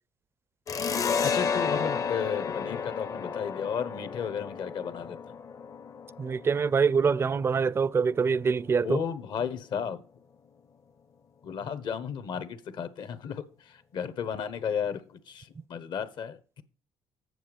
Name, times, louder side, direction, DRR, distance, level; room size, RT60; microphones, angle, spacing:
sound 1, 0.7-7.9, left 6 dB, 40° left, 0.6 m, -32 dB
voice 1, 1.2-5.2 8.8-10.0 11.4-16.6, left 7 dB, 65° left, 1.0 m, -34 dB
voice 2, 6.2-9.0, right 5 dB, 30° right, 0.4 m, -25 dB
7.9 x 7.1 x 5.0 m
supercardioid pair, 75°, 8 cm